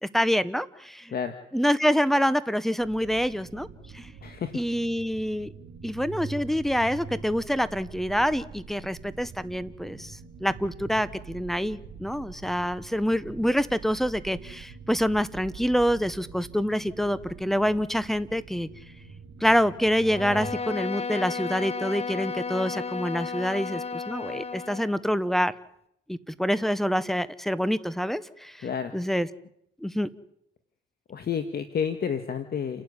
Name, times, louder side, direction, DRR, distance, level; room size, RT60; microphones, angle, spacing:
voice 1, 0.0-1.1 1.5-3.7 3.9-4.1 4.5-5.5 5.8-18.7 19.4-25.5 26.1-28.7 28.9-29.3 29.8-30.1, equal, ahead, 16 dB, 1.2 m, -26 dB
sound 1, 2.8-20.5, right 5 dB, 70° right, 3.7 m, -44 dB
voice 2, 4.2-4.6 28.6-28.9 31.1-32.8, left 7 dB, 50° left, 8 dB, 1.8 m, -30 dB
Bowed string instrument, 20.0-24.9, left 5 dB, 30° left, 1.1 m, -33 dB
29.5 x 12.0 x 9.9 m, 0.77 s
cardioid pair, 90°, 20 cm